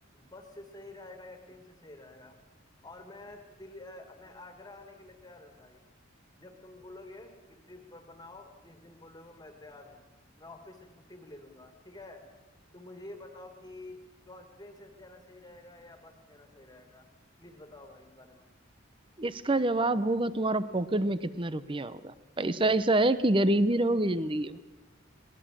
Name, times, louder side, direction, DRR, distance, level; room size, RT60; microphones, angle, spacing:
voice 1, 0.1-2.4 2.8-5.8 6.4-10.1 10.4-12.2 12.7-14.0 14.2-17.1 17.4-18.5, left 2 dB, 20° left, 6 dB, 2.1 m, -49 dB
voice 2, 19.2-24.6, right 2 dB, 25° right, 15 dB, 0.8 m, -27 dB
21.5 x 19.0 x 7.5 m, 1.1 s
head